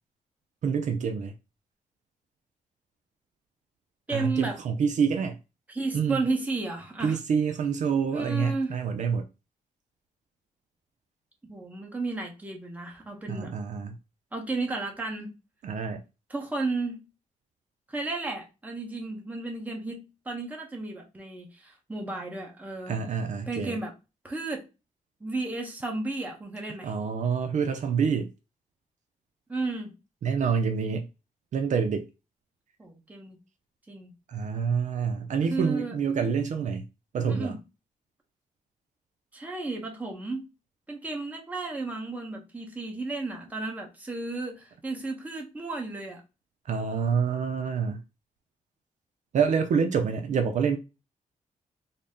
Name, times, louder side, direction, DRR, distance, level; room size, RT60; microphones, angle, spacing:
voice 1, 0.6-1.3 4.1-5.4 5.9-6.2 7.0-9.3 13.3-13.9 15.6-16.0 22.9-23.8 26.8-28.3 30.2-31.1 31.5-32.0 34.3-36.8 37.1-37.6 46.7-48.0 49.3-50.8, right 6 dB, 60° right, 0.4 m, -27 dB
voice 2, 4.1-4.6 5.7-7.2 8.1-8.8 11.5-13.5 14.3-15.3 16.3-17.0 17.9-23.0 23.5-23.9 24.2-24.6 25.2-26.9 29.5-29.9 32.8-33.4 33.9-34.1 35.5-36.0 37.3-37.6 39.3-40.4 40.9-46.2, right 3 dB, 10° right, 0.9 m, -33 dB
4.0 x 2.1 x 3.5 m
wide cardioid pair, 145°, 14 cm